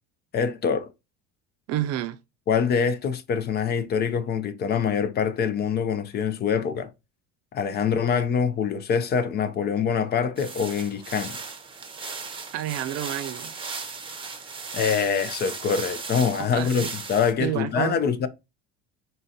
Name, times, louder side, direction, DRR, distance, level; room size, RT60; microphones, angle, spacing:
voice 1, 0.3-0.9 2.5-6.9 7.5-11.4 14.7-18.3, left 6 dB, 35° left, 0.5 m, -25 dB
voice 2, 1.7-2.2 12.5-13.5 16.5-16.9 17.4-18.0, right 12 dB, 55° right, 0.5 m, -29 dB
sound 1, 10.4-17.3, right 4 dB, 15° right, 0.8 m, -36 dB
4.0 x 3.8 x 2.8 m
cardioid pair, 130°, 30 cm